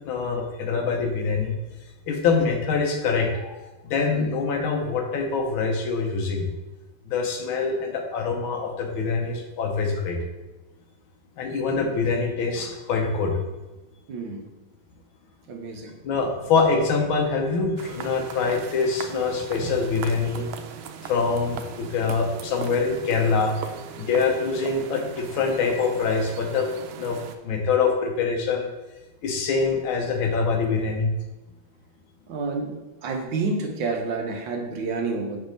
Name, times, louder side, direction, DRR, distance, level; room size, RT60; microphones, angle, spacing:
voice 1, 0.1-1.5 2.1-6.5 7.1-10.2 11.4-13.4 16.0-20.5 21.0-23.6 24.0-26.7 27.0-27.2 27.4-28.7 29.2-31.1, left 4 dB, 80° left, 2 dB, 1.6 m, -24 dB
voice 2, 11.5-12.2 14.1-14.5 15.5-16.0 20.3-20.7 22.3-22.5 23.6-24.1 32.3-35.4, right 3 dB, 70° right, 3 dB, 1.4 m, -31 dB
sound 1, 17.8-27.4, right 7 dB, 85° right, 1.4 m, -39 dB
6.1 x 3.3 x 5.1 m, 1.1 s
omnidirectional pair, 2.2 m